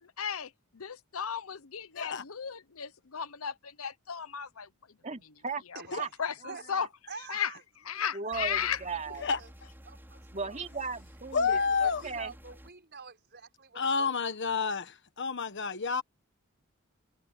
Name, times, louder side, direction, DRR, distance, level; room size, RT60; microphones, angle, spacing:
voice 1, 0.2-4.7 6.2-6.3 6.7-6.9 7.3-7.5 7.9-8.8, left 8 dB, 80° left, 1.0 m, -34 dB
voice 2, 5.0-5.6 5.9-6.1 6.4-6.9 8.1-9.2 10.3-12.3, right 4 dB, 35° right, 3.2 m, -37 dB
voice 3, 5.8-6.1 6.5-6.6 7.1-7.6 7.9-8.5 9.0-9.5 9.9-10.7 11.4-14.1, right 5 dB, 50° right, 5.3 m, -47 dB
sound 1, 8.3-12.7, equal, 10° right, 4.2 m, -52 dB
voice 4, 11.3-12.0 13.7-16.0, left 5 dB, 55° left, 1.3 m, -29 dB
head